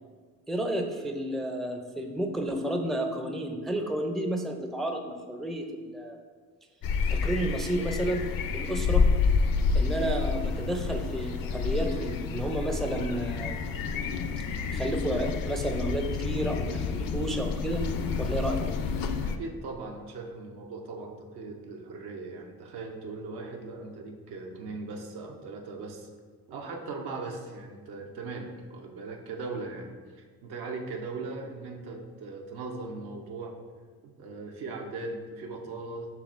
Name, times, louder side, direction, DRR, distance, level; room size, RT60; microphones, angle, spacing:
voice 1, 0.5-6.2 7.1-8.2 8.5-9.1 9.7-13.6 14.7-17.8 18.2-18.8, right 1 dB, ahead, 3 dB, 0.4 m, -31 dB
sound 1, 6.8-19.4, left 5 dB, 60° left, 0.5 m, -29 dB
voice 2, 19.2-26.1 26.5-33.5 34.2-36.1, right 3 dB, 75° right, 1 dB, 0.7 m, -39 dB
6.0 x 3.3 x 2.5 m, 1.5 s
supercardioid pair, 65°, 39 cm